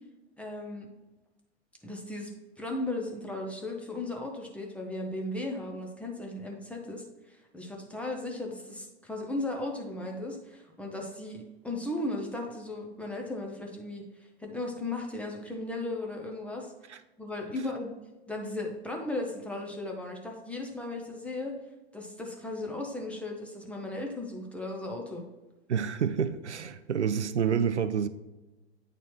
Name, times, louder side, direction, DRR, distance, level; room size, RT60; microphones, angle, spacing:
voice 1, 0.4-0.9 1.8-2.3 2.6-16.7 17.2-17.9 18.3-21.6 21.9-25.2, left 2 dB, 5° left, 0 dB, 0.6 m, -36 dB
voice 2, 25.7-28.1, right 7 dB, 80° right, 12 dB, 0.5 m, -28 dB
8.8 x 4.1 x 3.1 m, 1.1 s
figure-of-eight pair, 100°, 34 cm